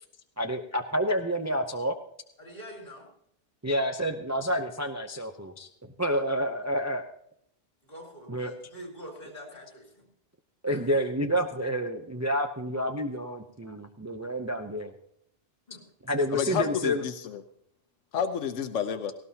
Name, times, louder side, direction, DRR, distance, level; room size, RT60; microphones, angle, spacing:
voice 1, 0.4-2.0 3.6-5.7 6.0-7.1 8.3-8.5 10.6-14.9 16.1-17.1, equal, 20° right, 5 dB, 0.5 m, -29 dB
voice 2, 2.4-3.1 6.1-6.2 7.8-10.0 10.7-11.1 15.7-15.9, equal, 45° left, 0 dB, 4.3 m, -45 dB
voice 3, 16.3-17.4 18.1-19.1, left 8 dB, 90° left, 8 dB, 1.1 m, -30 dB
18.0 x 17.0 x 2.8 m, 0.72 s
omnidirectional pair, 1.2 m